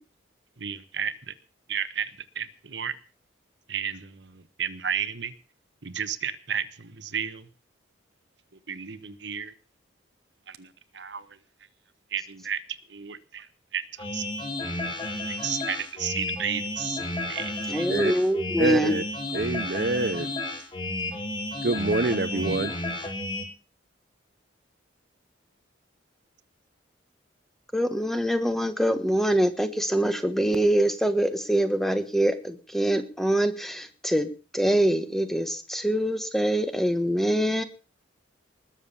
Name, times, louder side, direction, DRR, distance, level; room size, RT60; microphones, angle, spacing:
voice 1, 0.6-1.3 1.7-2.9 3.7-5.3 5.8-7.5 8.7-9.5 10.5-10.7 10.9-11.3 12.1-12.6 12.9-13.5 13.7-13.9 14.1-14.2 15.3-17.0 17.3-17.9, right 8 dB, 65° right, 1.1 m, -32 dB
sound 1, 14.0-23.4, left 2 dB, 25° left, 3.4 m, -32 dB
voice 2, 17.7-18.9 27.7-37.6, right 1 dB, ahead, 1.3 m, -24 dB
voice 3, 18.6-19.0 19.3-20.3 21.6-22.7, right 2 dB, 50° right, 0.7 m, -26 dB
20.0 x 7.3 x 7.1 m
head